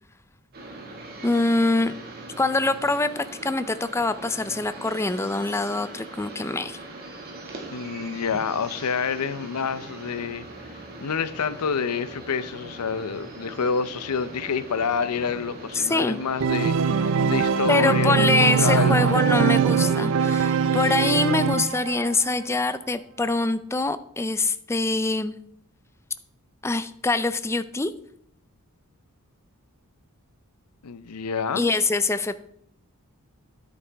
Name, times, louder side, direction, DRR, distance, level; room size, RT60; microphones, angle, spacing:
sound 1, 0.5-20.5, right 2 dB, 45° right, 2.0 m, -41 dB
voice 1, 1.2-2.0 2.4-6.8 15.7-16.2 17.7-25.3 26.6-27.9 31.6-32.4, left 3 dB, 10° left, 13 dB, 0.4 m, -24 dB
voice 2, 7.7-10.5 11.0-19.2 30.8-31.7, left 6 dB, 90° left, 15 dB, 0.6 m, -28 dB
Organ, 16.4-22.1, right 6 dB, 60° right, 0.4 m, -22 dB
10.0 x 8.2 x 3.4 m, 0.68 s
head